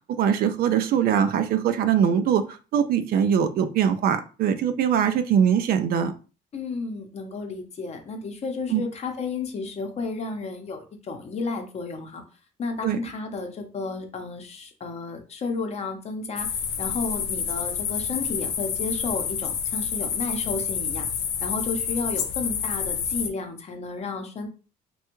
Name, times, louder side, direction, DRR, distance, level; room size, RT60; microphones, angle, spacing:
voice 1, 0.2-6.1 8.7-8.8 12.8-13.0, right 8 dB, 60° right, 10 dB, 0.4 m, -22 dB
voice 2, 6.5-12.2 12.6-16.5 16.8-21.1 21.4-24.5, left 3 dB, 40° left, 5 dB, 0.7 m, -32 dB
sound 1, 16.4-23.3, left 7 dB, 80° left, 0.6 m, -28 dB
3.3 x 2.3 x 3.0 m, 0.34 s
cardioid pair, 110°, 17 cm